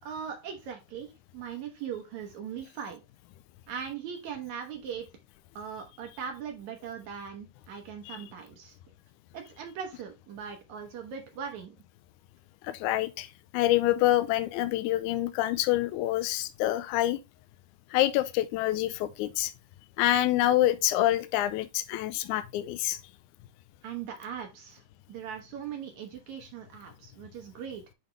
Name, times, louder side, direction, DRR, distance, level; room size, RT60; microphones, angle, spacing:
voice 1, 0.0-3.0 3.7-5.1 5.6-8.8 9.3-11.8 23.8-24.8 25.1-27.8, right 7 dB, 70° right, 2.0 m, -39 dB
voice 2, 12.6-13.3 13.5-17.2 17.9-19.5 20.0-23.0, left 14 dB, 85° left, 1.8 m, -26 dB
8.0 x 3.6 x 3.2 m
omnidirectional pair, 4.0 m